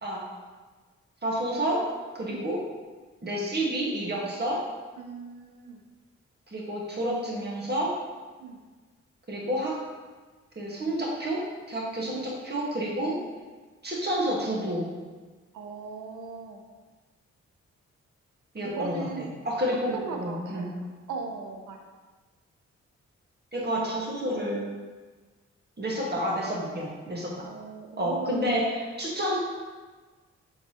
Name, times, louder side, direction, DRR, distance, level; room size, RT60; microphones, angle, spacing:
voice 1, 1.2-1.8 2.1-2.6 3.2-4.6 6.5-7.9 9.3-9.8 10.5-11.4 11.7-13.2 13.8-14.8 18.5-20.7 23.5-24.7 25.8-27.5 28.0-29.4, right 1 dB, 35° right, -4 dB, 1.5 m, -29 dB
voice 2, 5.0-5.8 8.4-8.6 12.0-12.1 13.2-13.3 15.5-16.6 18.6-19.4 19.9-20.7 21.1-21.9 27.4-28.6, right 4 dB, 85° right, 3 dB, 0.6 m, -38 dB
4.6 x 3.8 x 2.9 m, 1.4 s
supercardioid pair, 50°, 30 cm